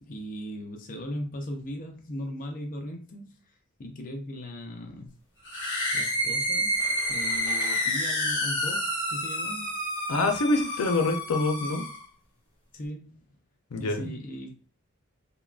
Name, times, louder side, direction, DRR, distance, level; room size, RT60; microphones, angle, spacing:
voice 1, 0.0-5.1 5.9-9.8 12.7-13.2 13.8-14.5, equal, 40° left, 3 dB, 0.4 m, -38 dB
sound 1, 5.4-12.0, equal, 60° left, 0.9 m, -29 dB
sound 2, 6.7-9.3, right 1 dB, 15° right, 0.5 m, -46 dB
voice 2, 10.1-11.8 13.7-14.1, left 2 dB, 90° left, 5 dB, 0.5 m, -26 dB
3.5 x 2.1 x 2.3 m, 0.39 s
head